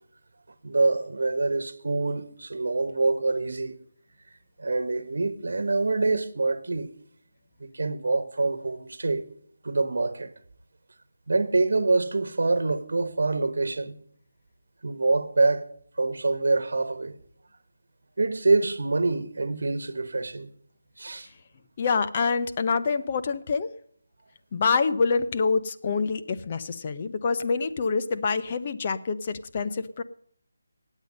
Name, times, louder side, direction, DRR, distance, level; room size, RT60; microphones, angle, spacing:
voice 1, 0.6-3.8 4.6-6.9 7.6-9.3 9.6-10.3 11.3-14.0 14.8-15.7 16.0-17.1 18.2-20.5 21.0-21.3, right 3 dB, 60° right, 1.4 m, -25 dB
voice 2, 21.8-23.7 24.5-30.0, left 4 dB, 20° left, 0.6 m, -26 dB
19.0 x 8.2 x 5.3 m
figure-of-eight pair, 180°, 0 cm